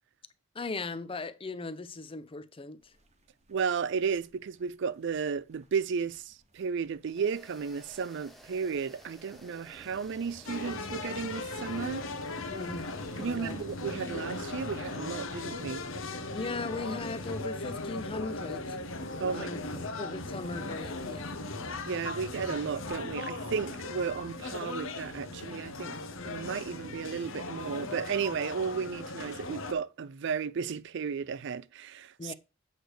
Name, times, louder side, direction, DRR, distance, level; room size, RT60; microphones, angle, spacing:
voice 1, 0.5-2.8 12.5-12.9 13.2-13.6 16.3-18.8 19.3-19.6 20.0-21.4 32.2-32.3, left 3 dB, 30° left, 0.5 m, -38 dB
sound 1, 2.8-15.0, right 1 dB, 35° right, 1.0 m, -59 dB
voice 2, 3.5-12.0 13.2-15.8 19.2-19.5 21.8-26.0 26.2-32.3, right 6 dB, 60° right, 0.4 m, -34 dB
sound 2, 7.1-15.9, equal, ahead, 0.9 m, -56 dB
sound 3, 10.5-29.7, left 2 dB, 75° left, 0.9 m, -38 dB
8.1 x 3.3 x 6.4 m
head